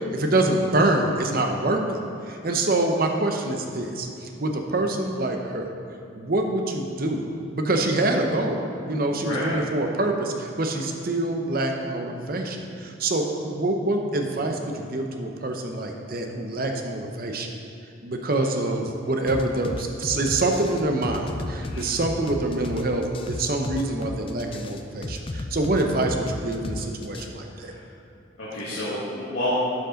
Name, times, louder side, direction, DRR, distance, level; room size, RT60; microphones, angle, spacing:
voice 1, 0.1-1.8 2.3-5.7 6.1-7.2 7.5-17.5 18.0-27.7, right 2 dB, 50° right, 3 dB, 0.7 m, -25 dB
voice 2, 9.2-9.5 21.6-21.8 27.5-27.9 28.4-29.6, left 1 dB, 80° left, -11 dB, 1.8 m, -30 dB
sound 1, 19.3-27.3, left 2 dB, 25° left, 0.4 m, -34 dB
11.5 x 5.3 x 3.8 m, 2.6 s
head